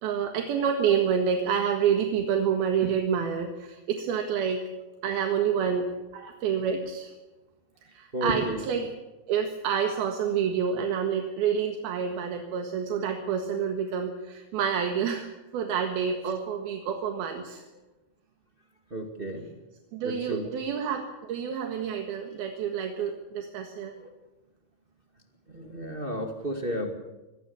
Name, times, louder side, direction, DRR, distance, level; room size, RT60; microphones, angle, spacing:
voice 1, 0.0-4.6 5.0-5.9 6.1-7.1 7.9-8.9 9.3-15.3 15.5-17.6 19.9-23.9, right 7 dB, 75° right, 5 dB, 3.5 m, -28 dB
voice 2, 8.1-8.7 12.6-12.7 18.9-19.5 20.0-20.5 23.9-24.1 25.5-26.9, equal, 25° right, 4 dB, 1.2 m, -32 dB
24.5 x 20.0 x 7.1 m, 1.1 s
omnidirectional pair, 4.6 m